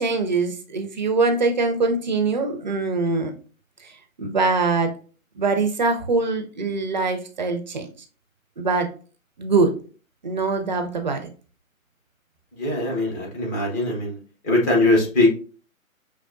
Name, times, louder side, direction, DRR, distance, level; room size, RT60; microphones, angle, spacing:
voice 1, 0.0-3.3 3.8-3.9 4.2-4.9 5.4-7.9 8.6-8.9 9.4-9.7 10.2-11.3, right 3 dB, 35° right, 6 dB, 0.5 m, -23 dB
voice 2, 12.6-14.2 14.4-15.3, left 2 dB, 15° left, -2 dB, 0.6 m, -21 dB
5.6 x 3.1 x 2.5 m, 0.38 s
figure-of-eight pair, 135°, 42 cm